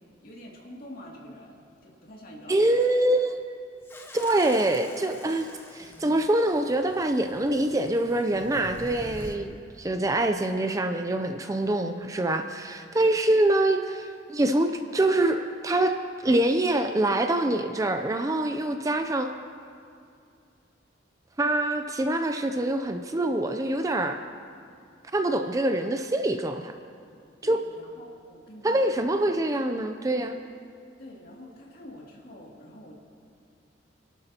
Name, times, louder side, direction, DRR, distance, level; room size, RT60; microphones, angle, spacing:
voice 1, 0.2-2.8 27.4-29.1 31.0-32.9, left 1 dB, 50° left, -3 dB, 2.5 m, -46 dB
voice 2, 2.5-3.6 4.1-16.0 16.2-19.3 21.4-24.2 25.1-26.7 27.4-27.6 28.6-30.4, right 1 dB, 20° right, 7 dB, 0.4 m, -25 dB
sound 1, 3.8-9.4, left 1 dB, 10° left, 0.7 m, -45 dB
27.5 x 12.0 x 2.9 m, 2.4 s
head